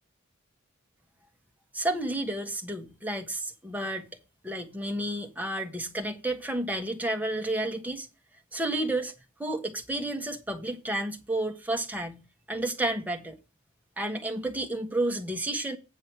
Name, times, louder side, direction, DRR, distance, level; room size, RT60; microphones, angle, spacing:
voice 1, 1.7-4.1 4.4-8.1 8.5-9.1 9.4-13.4 14.0-15.8, right 1 dB, 10° right, 1.3 m, -31 dB
9.2 x 5.2 x 5.9 m
head